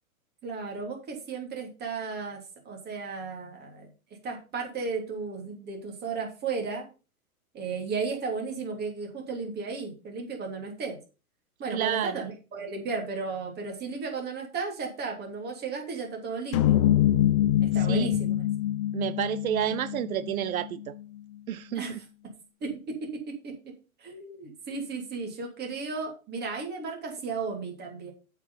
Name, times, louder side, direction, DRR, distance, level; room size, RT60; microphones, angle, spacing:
voice 1, 0.4-2.4 2.6-3.9 4.2-6.9 7.5-11.0 11.6-16.8 17.6-18.4 21.7-22.0 22.6-23.7 24.0-28.1, right 4 dB, 25° right, 3.0 m, -34 dB
voice 2, 11.7-12.3 17.9-18.1 18.9-20.9 21.5-22.0, right 11 dB, 75° right, 0.7 m, -30 dB
sound 1, 16.5-20.8, left 12 dB, 25° left, 0.4 m, -25 dB
8.1 x 5.1 x 5.6 m
hypercardioid pair, 135°, 43 cm